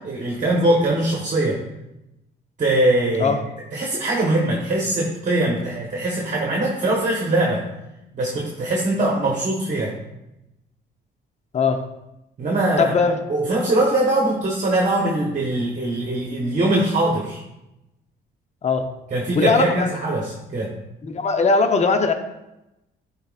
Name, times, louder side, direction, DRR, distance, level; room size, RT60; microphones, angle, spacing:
voice 1, 0.0-1.6 2.6-3.3 3.7-7.6 8.1-9.9 12.4-12.9 13.3-17.4 19.1-20.7, right 1 dB, 40° right, -2 dB, 1.2 m, -22 dB
voice 2, 12.8-13.2 18.6-18.9 19.4-19.9 21.0-22.1, left 4 dB, 35° left, 6 dB, 0.7 m, -19 dB
11.0 x 4.1 x 2.4 m, 0.91 s
cardioid pair, 90°, 20 cm